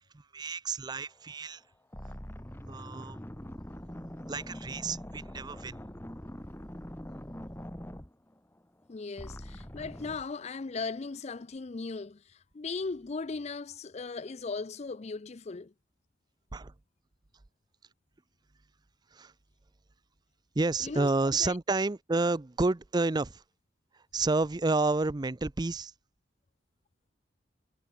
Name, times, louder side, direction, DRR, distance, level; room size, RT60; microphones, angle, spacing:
voice 1, 0.1-1.6 2.7-3.2 4.3-5.7 16.5-16.7 19.1-19.3 20.6-23.4 24.1-25.9, right 3 dB, 25° right, 0.5 m, -30 dB
sound 1, 1.3-1.5 1.9-8.8 9.2-10.3, equal, 10° left, 1.7 m, -43 dB
voice 2, 8.9-15.7 20.8-21.1 21.4-21.5, left 4 dB, 35° left, 0.5 m, -38 dB
head